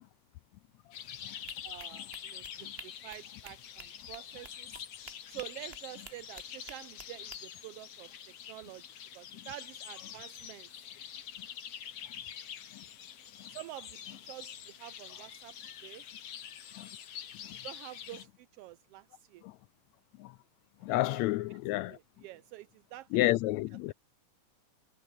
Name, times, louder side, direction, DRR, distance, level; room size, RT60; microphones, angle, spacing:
sound 1, 0.9-18.2, left 9 dB, 60° left, 2.6 m, -46 dB
sound 2, 1.5-7.4, right 5 dB, 30° right, 1.1 m, -52 dB
voice 1, 1.6-4.8 5.3-8.1 8.5-8.8 9.1-10.7 13.5-15.5 15.8-16.0 17.5-19.4 20.9-21.2 21.7-23.1, right 15 dB, 80° right, 1.3 m, -48 dB
voice 2, 20.8-22.0 23.1-23.9, left 17 dB, 80° left, 1.8 m, -30 dB
omnidirectional pair, 3.3 m